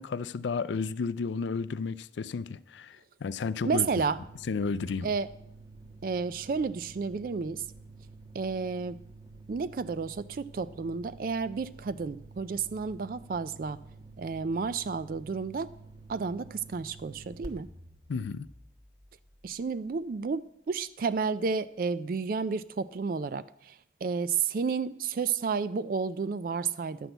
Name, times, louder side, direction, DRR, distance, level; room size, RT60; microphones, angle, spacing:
voice 1, 0.0-3.9 4.5-5.1 18.1-18.5, left 4 dB, 85° left, 0.4 m, -32 dB
voice 2, 3.6-4.2 5.0-5.3 6.0-7.6 8.3-9.0 9.5-13.8 14.2-15.7 16.1-17.7 19.4-27.1, right 5 dB, 50° right, 0.3 m, -31 dB
sound 1, 3.7-20.0, right 2 dB, 25° right, 1.4 m, -50 dB
11.0 x 6.1 x 7.9 m
head